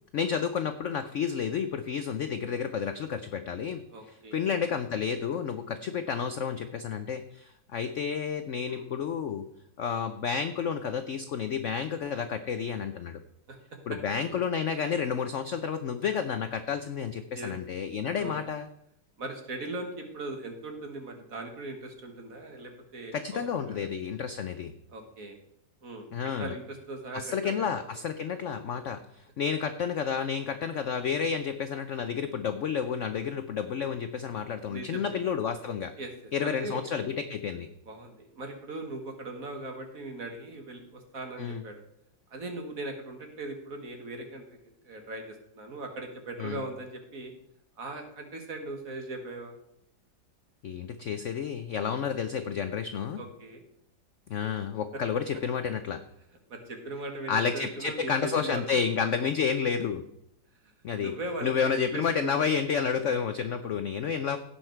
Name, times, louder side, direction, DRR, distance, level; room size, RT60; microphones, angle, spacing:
voice 1, 0.1-3.8 4.3-9.4 9.8-13.2 13.9-18.7 23.1-24.7 26.1-26.5 27.1-35.9 36.3-37.7 41.4-41.6 46.4-46.6 50.6-53.2 54.3-56.0 57.3-60.0 60.8-61.1 61.4-64.4, left 6 dB, 70° left, 9 dB, 0.7 m, -30 dB
voice 2, 3.9-4.5 8.7-8.9 13.5-13.6 17.3-17.5 18.1-18.4 19.2-23.9 24.9-25.4 25.8-27.7 27.9-28.0 34.7-35.2 36.0-36.1 36.4-36.8 37.9-41.8 42.3-44.6 44.8-47.3 47.8-49.5 53.2-53.6 56.5-58.6 59.0-59.2 61.0-62.6, right 2 dB, 50° right, 4 dB, 1.9 m, -39 dB
16.5 x 5.7 x 4.5 m, 0.75 s
omnidirectional pair, 1.9 m